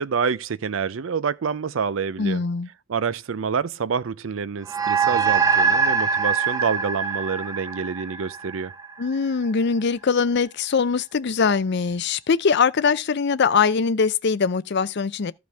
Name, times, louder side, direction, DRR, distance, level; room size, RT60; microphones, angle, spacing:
voice 1, 0.0-2.4 2.9-8.7, right 6 dB, 80° right, 0.5 m, -27 dB
voice 2, 2.2-2.7 9.0-15.3, left 5 dB, 60° left, 0.5 m, -22 dB
sound 1, 4.7-9.3, right 6 dB, 15° right, 0.7 m, -23 dB
14.5 x 5.1 x 3.4 m
head